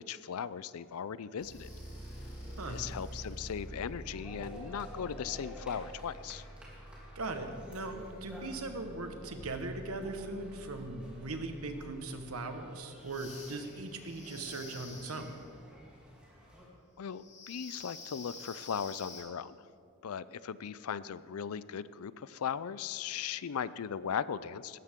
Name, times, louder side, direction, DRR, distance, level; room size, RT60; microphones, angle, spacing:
voice 1, 0.0-1.7 2.7-6.4 17.0-19.6 20.0-24.8, left 7 dB, 85° left, 17 dB, 0.4 m, -38 dB
sound 1, 1.4-11.8 13.0-15.5 17.1-19.2, equal, 35° left, 3.1 m, -48 dB
sound 2, 1.4-16.7, equal, 5° right, 3.0 m, -53 dB
voice 2, 7.1-15.4, right 2 dB, 85° right, 6 dB, 1.3 m, -39 dB
17.5 x 13.5 x 3.7 m, 2.4 s
head